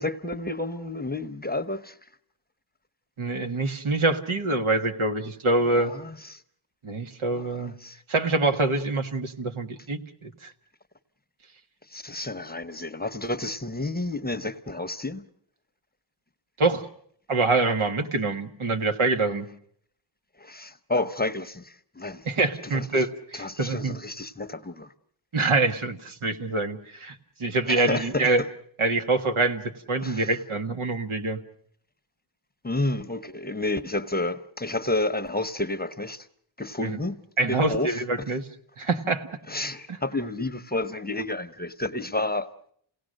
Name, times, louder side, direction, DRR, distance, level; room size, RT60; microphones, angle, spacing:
voice 1, 0.0-1.9 5.6-6.4 7.3-8.0 11.9-15.2 20.4-22.2 22.6-23.0 23.3-24.9 27.7-28.3 30.0-30.3 32.6-36.3 36.6-37.2 37.5-38.0 39.5-42.5, left 2 dB, 20° left, 0.8 m, -30 dB
voice 2, 3.2-5.9 6.8-7.7 8.1-10.5 16.6-16.9 17.3-19.5 22.2-24.0 25.3-28.4 28.8-29.6 29.9-31.4 36.8-36.9 37.4-38.4 38.8-39.3 39.9-40.0, right 3 dB, 80° right, 1.6 m, -25 dB
28.5 x 18.0 x 6.4 m
wide cardioid pair, 95°, 49 cm